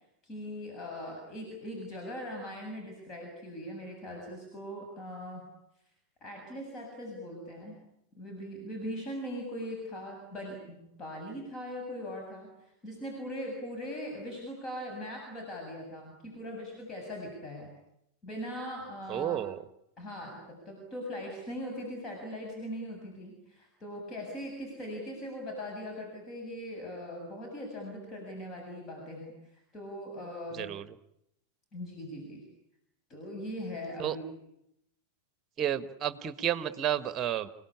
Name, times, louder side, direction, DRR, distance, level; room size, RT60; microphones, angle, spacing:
voice 1, 0.2-5.5 6.2-7.8 8.2-12.5 12.8-17.7 18.2-19.4 20.0-30.7 31.7-32.4 33.1-34.4, equal, 25° left, 1 dB, 7.6 m, -40 dB
voice 2, 19.1-19.6 30.5-30.8 34.0-34.2 35.6-37.5, right 10 dB, 30° right, 14 dB, 1.5 m, -31 dB
28.5 x 18.5 x 10.0 m, 0.82 s
figure-of-eight pair, 90°, 0 cm